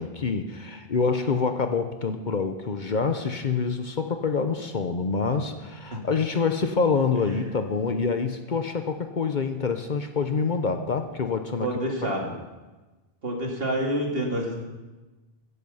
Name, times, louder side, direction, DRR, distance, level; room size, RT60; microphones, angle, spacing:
voice 1, 0.0-11.7 12.2-12.4, left 5 dB, 50° left, 7 dB, 0.9 m, -26 dB
voice 2, 11.6-12.2 13.2-14.6, right 1 dB, 70° right, 0 dB, 2.6 m, -27 dB
15.0 x 10.0 x 5.6 m, 1.2 s
omnidirectional pair, 1.0 m